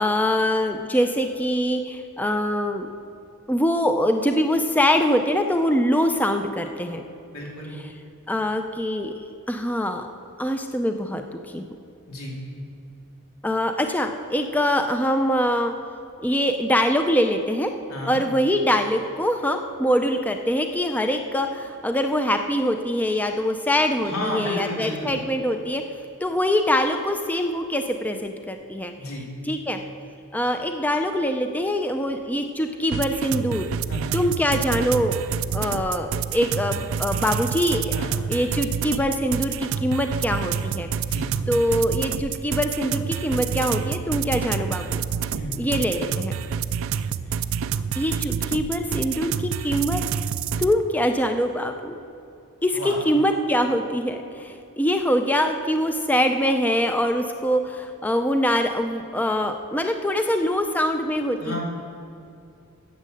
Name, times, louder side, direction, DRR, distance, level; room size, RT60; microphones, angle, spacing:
voice 1, 0.0-2.9 3.5-7.0 7.8-7.9 8.3-9.1 9.5-10.1 10.4-11.6 13.4-15.7 16.2-17.7 18.1-25.8 26.2-28.9 29.4-29.8 30.3-33.7 34.1-35.2 35.5-37.9 38.3-40.9 41.5-45.0 45.6-46.4 48.0-50.0 50.6-51.9 52.6-61.6, equal, 10° left, 6 dB, 0.4 m, -23 dB
voice 2, 7.3-7.7 12.1-12.4 17.9-18.1 24.0-25.2 29.0-29.2 33.9-34.1 37.9-38.1 41.0-41.3 45.3-45.6 52.7-53.0 61.4-61.6, left 1 dB, 85° left, -3 dB, 3.0 m, -32 dB
sound 1, 32.9-50.7, right 7 dB, 70° right, 0.4 m, -28 dB
10.5 x 7.5 x 7.6 m, 2.7 s
head